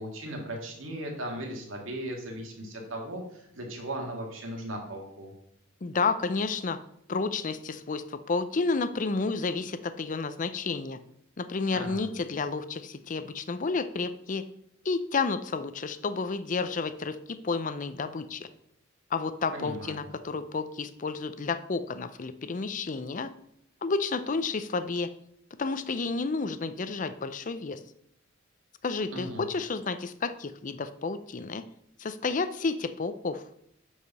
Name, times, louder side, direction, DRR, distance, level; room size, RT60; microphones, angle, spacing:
voice 1, 0.0-5.3 11.7-12.1 19.5-20.1 29.1-29.4, right 1 dB, 70° right, 1 dB, 2.1 m, -37 dB
voice 2, 5.8-6.8 7.1-11.0 11.4-14.5 14.8-18.5 19.1-23.3 23.8-25.1 25.6-27.8 28.8-31.6 32.0-33.4, left 4 dB, 40° left, 12 dB, 0.5 m, -31 dB
8.1 x 4.9 x 5.4 m, 0.72 s
head